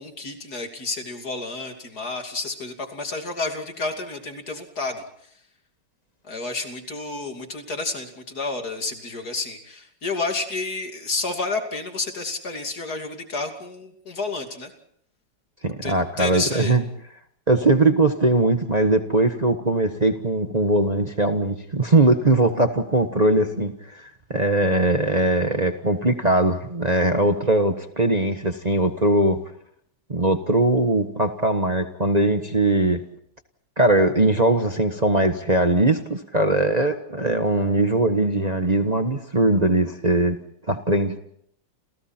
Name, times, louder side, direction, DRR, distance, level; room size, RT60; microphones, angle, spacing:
voice 1, 0.0-5.0 6.2-14.7 15.8-16.8, left 3 dB, 60° left, 4 dB, 3.3 m, -30 dB
voice 2, 15.6-16.8 17.5-29.4 30.1-33.0 33.8-40.4 40.7-41.2, right 2 dB, 25° right, 6 dB, 1.3 m, -20 dB
30.0 x 28.5 x 4.4 m, 0.69 s
omnidirectional pair, 1.9 m